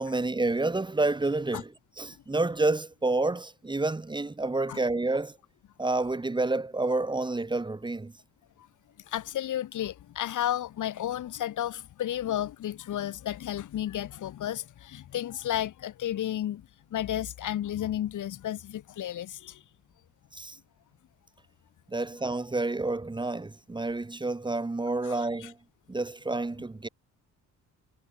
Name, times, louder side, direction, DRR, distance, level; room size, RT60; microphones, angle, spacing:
voice 1, 0.0-1.7 2.0-5.4 5.8-8.1 20.3-20.6 21.9-25.6 25.9-26.9, right 2 dB, 15° right, 2.5 m, -29 dB
voice 2, 9.1-19.6 22.0-22.1 25.0-25.5, left 11 dB, 70° left, 6.7 m, -33 dB
cardioid pair, 140°, 31 cm